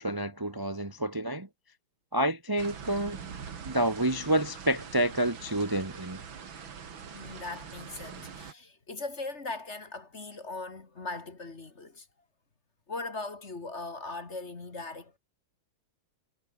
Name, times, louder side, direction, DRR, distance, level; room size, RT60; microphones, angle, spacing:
voice 1, 0.0-1.5 2.1-3.2 3.6-6.2, right 1 dB, 10° right, 1.2 m, -29 dB
sound 1, 2.6-8.5, right 6 dB, 70° right, 2.9 m, -43 dB
voice 2, 6.9-12.1 12.9-15.2, left 3 dB, 35° left, 2.4 m, -39 dB
omnidirectional pair, 2.3 m